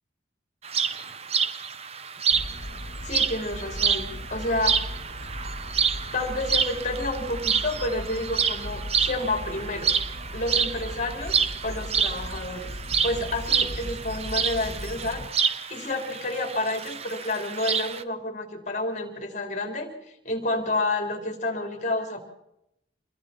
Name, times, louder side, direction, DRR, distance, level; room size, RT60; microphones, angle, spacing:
sound 1, 0.6-18.0, right 6 dB, 30° right, 0.8 m, -28 dB
sound 2, 2.3-15.3, left 1 dB, 60° left, 2.1 m, -38 dB
voice 1, 3.0-4.8 6.1-9.9 10.3-12.7 13.0-15.2 15.7-22.2, left 2 dB, 35° left, 3 dB, 4.0 m, -30 dB
28.0 x 22.5 x 4.5 m, 0.83 s
head